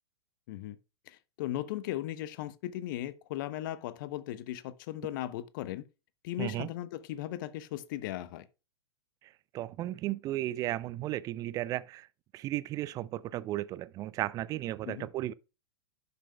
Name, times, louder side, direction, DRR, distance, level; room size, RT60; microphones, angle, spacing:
voice 1, 1.1-5.8 6.2-8.5 14.8-15.1, left 14 dB, 45° left, 0.8 m, -37 dB
voice 2, 6.4-6.7 9.2-12.1 12.3-15.3, right 14 dB, 25° right, 0.4 m, -35 dB
11.5 x 6.8 x 2.3 m
figure-of-eight pair, 105°, 15 cm